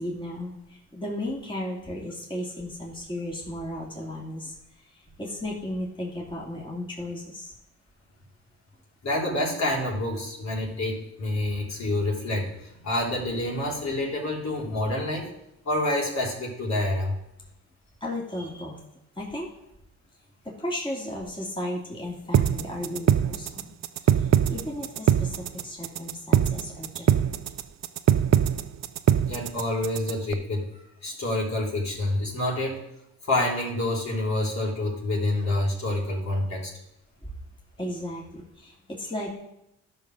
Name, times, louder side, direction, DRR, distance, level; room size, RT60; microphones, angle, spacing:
voice 1, 0.0-7.5 18.0-18.8 19.2-19.5 20.4-23.7 24.0-27.3 37.2-37.3 37.8-39.3, left 1 dB, 15° left, -3 dB, 2.7 m, -35 dB
voice 2, 9.0-15.3 15.6-17.2 29.3-30.7 31.0-32.8 33.2-36.7, left 1 dB, 55° left, -4 dB, 3.6 m, -27 dB
sound 1, 22.3-30.3, right 10 dB, 50° right, 0.6 m, -22 dB
11.5 x 5.5 x 6.2 m, 0.83 s
supercardioid pair, 60°, 34 cm